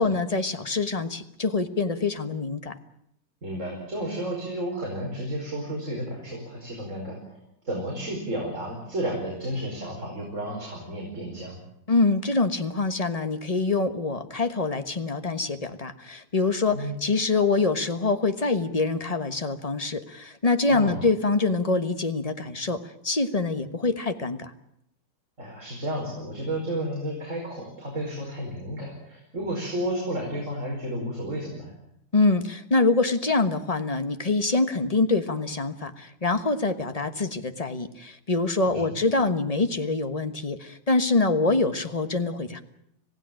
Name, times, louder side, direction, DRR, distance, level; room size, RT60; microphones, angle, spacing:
voice 1, 0.0-2.8 11.9-24.5 32.1-42.6, left 3 dB, 25° left, 9 dB, 1.2 m, -25 dB
voice 2, 3.4-7.4 7.7-11.6 16.7-17.0 20.7-21.0 25.4-31.7 38.7-38.9, right 1 dB, 40° right, -2 dB, 5.4 m, -32 dB
26.5 x 16.5 x 9.0 m, 0.76 s
omnidirectional pair, 2.0 m